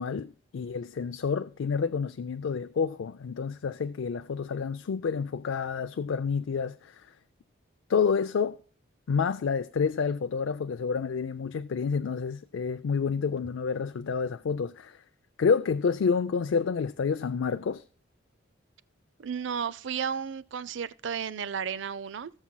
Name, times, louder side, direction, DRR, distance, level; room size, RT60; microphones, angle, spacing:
voice 1, 0.0-7.1 7.9-8.6 9.1-15.0 15.4-17.8, left 5 dB, 75° left, 0.4 m, -29 dB
voice 2, 19.2-22.3, right 7 dB, 65° right, 0.5 m, -33 dB
18.0 x 7.2 x 2.2 m
head